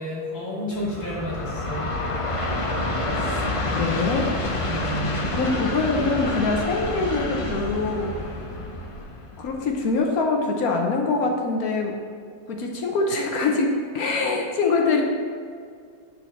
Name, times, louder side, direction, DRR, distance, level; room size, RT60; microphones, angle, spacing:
voice 1, 0.0-1.9 4.7-5.2, equal, 60° left, -8 dB, 2.7 m, -31 dB
Train, 0.7-9.9, left 2 dB, 35° left, 0.5 m, -28 dB
voice 2, 3.1-4.3 5.3-8.3 9.4-12.0 12.5-15.0, left 3 dB, 75° left, 1 dB, 1.3 m, -24 dB
9.9 x 4.3 x 5.8 m, 2.2 s
omnidirectional pair, 1.5 m